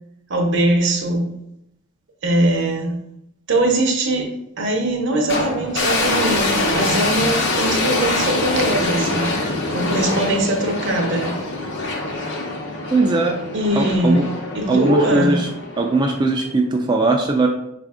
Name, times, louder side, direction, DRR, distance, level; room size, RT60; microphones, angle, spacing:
voice 1, 0.3-1.3 2.2-3.0 3.5-9.4 9.7-11.3 13.5-15.4, right 1 dB, 60° right, 0.8 m, -21 dB
sound 1, 5.3-16.5, left 2 dB, 55° left, 0.9 m, -24 dB
voice 2, 12.9-13.5 13.8-14.3 14.7-15.5 15.8-17.5, right 3 dB, 20° right, 0.3 m, -19 dB
4.9 x 2.5 x 3.5 m
head